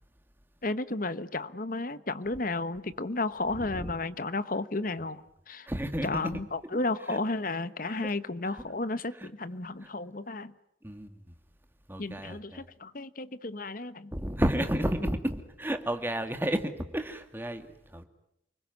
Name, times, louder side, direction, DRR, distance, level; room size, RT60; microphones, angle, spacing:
voice 1, 0.6-5.7 6.0-10.5 12.0-14.1, left 2 dB, 45° left, 1.2 m, -33 dB
voice 2, 3.6-3.9 5.7-6.4 7.1-7.2 7.8-8.1 8.5-8.6 9.2-9.3 9.8-9.9 10.8-11.3 11.9-12.7 14.1-18.0, equal, 10° right, 2.3 m, -32 dB
29.5 x 21.0 x 9.5 m
head